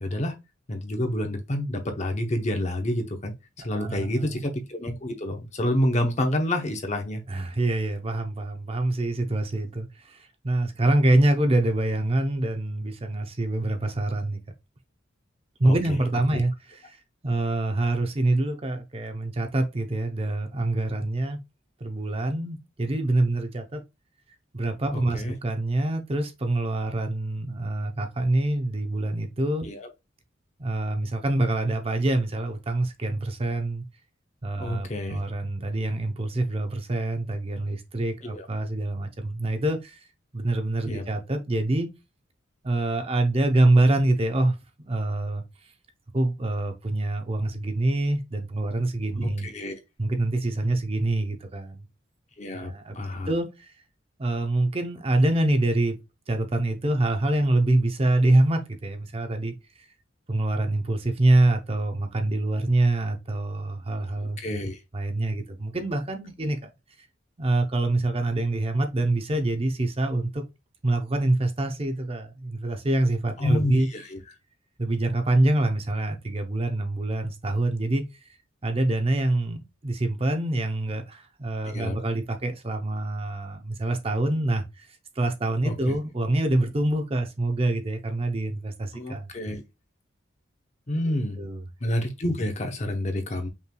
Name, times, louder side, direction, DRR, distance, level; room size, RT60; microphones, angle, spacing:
voice 1, 0.0-0.4 0.7-7.2 15.6-15.7 16.3-16.4 24.9-25.3 29.6-29.9 34.6-35.2 38.2-38.5 40.9-41.0 49.2-49.8 52.4-53.3 64.4-64.8 73.4-74.2 81.7-82.0 85.6-85.9 88.9-89.6 90.9-91.4 91.8-93.5, left 1 dB, 35° left, 0.7 m, -28 dB
voice 2, 3.6-4.4 7.3-14.4 15.6-17.0 17.2-21.4 21.8-23.8 24.5-29.7 30.6-33.8 34.4-40.0 40.3-41.9 42.6-45.4 46.1-49.5 50.0-51.9 52.5-53.0 53.3-53.7 54.2-56.0 56.3-59.5 60.3-64.4 64.9-66.7 67.4-70.4 70.8-73.9 74.8-78.0 78.6-89.3 91.1-91.6, right 2 dB, 30° right, 0.6 m, -25 dB
5.5 x 3.2 x 2.2 m
head